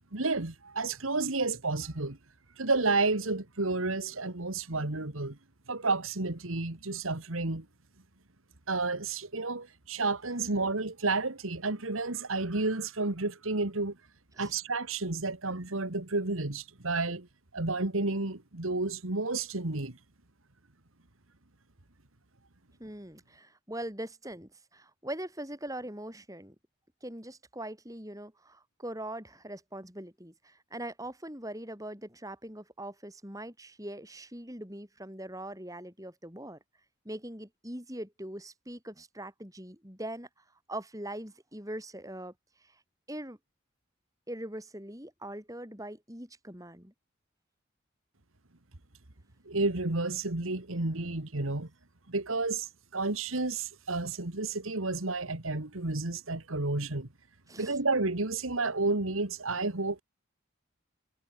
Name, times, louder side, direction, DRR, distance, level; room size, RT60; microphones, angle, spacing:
voice 1, 0.1-2.2 2.6-5.4 5.7-7.7 8.7-14.0 14.4-17.3 17.5-20.0 49.5-51.7 52.1-57.1 57.6-60.0, right 3 dB, 80° right, 2.1 m, -31 dB
voice 2, 22.8-26.6 27.0-36.6 37.0-40.3 40.7-42.3 42.6-42.8 43.1-43.4 44.3-46.9 57.5-57.8, right 1 dB, 15° right, 7.4 m, -42 dB
head